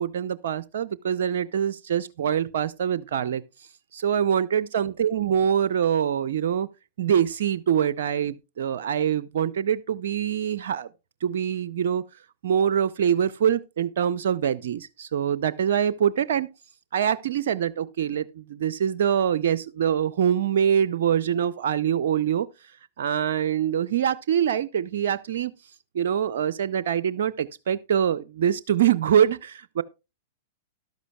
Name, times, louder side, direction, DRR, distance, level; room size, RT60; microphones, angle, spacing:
voice 1, 0.0-3.4 3.9-6.7 7.0-10.9 11.2-12.1 12.4-16.5 16.9-22.5 23.0-25.5 25.9-29.8, right 9 dB, 65° right, 0.5 m, -24 dB
13.5 x 11.5 x 2.3 m
hypercardioid pair, 105°, 0 cm